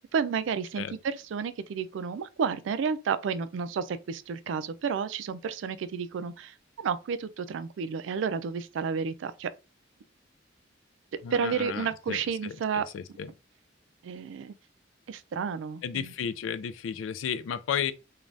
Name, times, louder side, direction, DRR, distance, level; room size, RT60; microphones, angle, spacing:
voice 1, 0.0-9.5 11.3-12.9 14.0-14.5 15.1-16.1, right 6 dB, 75° right, 0.3 m, -31 dB
voice 2, 11.2-13.3 15.8-17.9, left 7 dB, 90° left, 0.3 m, -33 dB
2.6 x 2.3 x 3.2 m
head